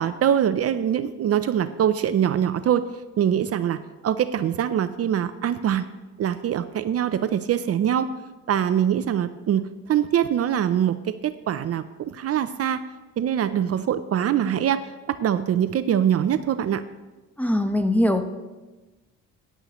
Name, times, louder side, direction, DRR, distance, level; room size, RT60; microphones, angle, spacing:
voice 1, 0.0-2.9 3.2-5.9 6.2-8.1 8.5-12.8 13.2-16.8, right 9 dB, 55° right, 12 dB, 0.5 m, -23 dB
voice 2, 17.4-18.2, left 1 dB, 5° left, 7 dB, 0.9 m, -21 dB
14.5 x 10.5 x 3.1 m, 1.2 s
cardioid pair, 90°, 30 cm